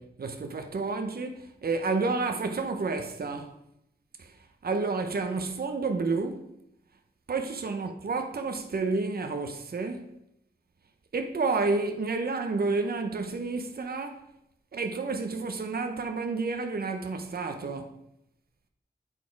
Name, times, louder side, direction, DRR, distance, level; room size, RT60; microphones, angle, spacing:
voice 1, 0.0-3.6 4.2-4.4 4.6-6.5 7.3-10.1 11.1-14.2 14.7-18.0, right 3 dB, 60° right, 0.8 m, -30 dB
9.0 x 4.3 x 4.6 m
wide cardioid pair, 100°, 18 cm